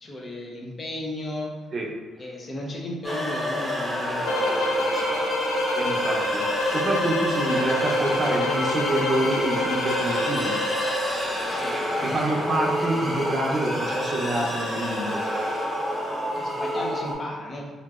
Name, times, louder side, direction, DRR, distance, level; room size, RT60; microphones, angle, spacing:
voice 1, 0.0-1.5 2.2-5.3 7.6-7.7 11.5-11.8 12.3-12.6 16.4-17.7, left 1 dB, 40° left, -1 dB, 0.6 m, -35 dB
sound 1, 3.0-17.1, equal, 25° left, 1.3 m, -28 dB
sound 2, 4.2-11.0, left 1 dB, 85° left, 0.3 m, -27 dB
voice 2, 5.7-6.4 6.7-10.5 12.0-15.2, right 1 dB, 45° right, -1 dB, 0.6 m, -27 dB
2.9 x 2.5 x 2.4 m, 1.2 s
cardioid pair, 90°, 0 cm